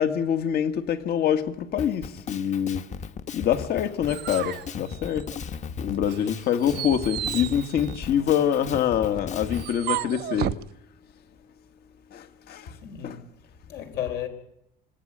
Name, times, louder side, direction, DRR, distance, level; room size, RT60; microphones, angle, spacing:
voice 1, 0.0-2.9 3.3-5.3 5.8-10.6 12.1-12.7 13.0-13.2, left 9 dB, 70° left, 2.1 m, -25 dB
Drum kit, 1.8-9.7, left 6 dB, 45° left, 1.2 m, -36 dB
sound 1, 3.6-5.6 6.0-10.7, right 14 dB, 75° right, 0.9 m, -34 dB
voice 2, 12.7-14.3, left 10 dB, 85° left, 5.1 m, -35 dB
26.0 x 18.5 x 9.0 m
cardioid pair, 110°, 17 cm